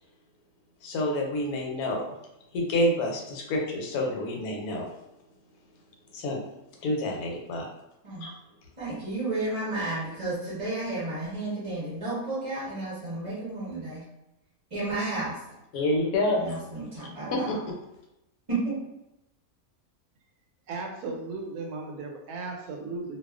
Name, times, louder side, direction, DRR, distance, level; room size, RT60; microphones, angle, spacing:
voice 1, 0.8-2.1 2.5-4.9 6.1-6.4 6.8-7.7 8.2-8.3 15.7-16.6 17.3-17.7, left 1 dB, 90° left, 0 dB, 1.1 m, -28 dB
voice 2, 8.8-14.0 14.7-15.3 16.4-17.5 18.5-18.6, right 2 dB, 35° right, -8 dB, 0.6 m, -32 dB
voice 3, 20.7-23.2, right 3 dB, 90° right, 2 dB, 1.1 m, -36 dB
2.3 x 2.3 x 2.3 m, 0.89 s
omnidirectional pair, 1.5 m